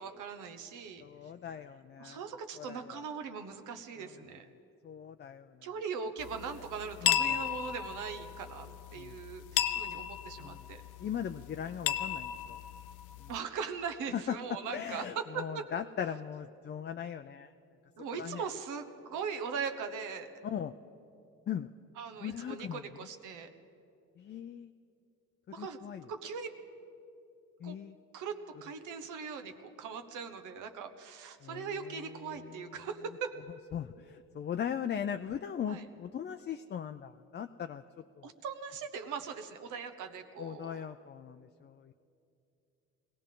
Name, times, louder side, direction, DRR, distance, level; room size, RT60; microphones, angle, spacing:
voice 1, 0.0-1.0 2.0-4.5 5.6-10.8 13.3-15.7 18.0-20.3 22.0-23.5 25.5-25.8 26.1-26.5 27.6-27.7 28.1-33.3 35.7-35.8 38.2-40.9, right 6 dB, 85° right, 7 dB, 1.1 m, -40 dB
voice 2, 1.0-2.3 2.5-3.0 4.0-4.1 4.8-5.7 7.0-7.7 8.9-9.2 9.9-10.0 10.4-10.7 11.0-12.6 13.2-13.3 14.1-14.4 14.7-17.5 18.2-18.5 20.4-20.7 21.5-21.7 22.2-23.1 24.2-24.7 25.6-26.1 27.6-28.0 31.4-32.6 33.7-37.8 38.2-38.3 40.4-41.9, left 8 dB, 35° left, 8 dB, 0.4 m, -39 dB
sound 1, 6.2-13.4, left 11 dB, 85° left, 0.6 m, -35 dB
22.0 x 17.0 x 3.8 m, 2.6 s
cardioid pair, 90°, 30 cm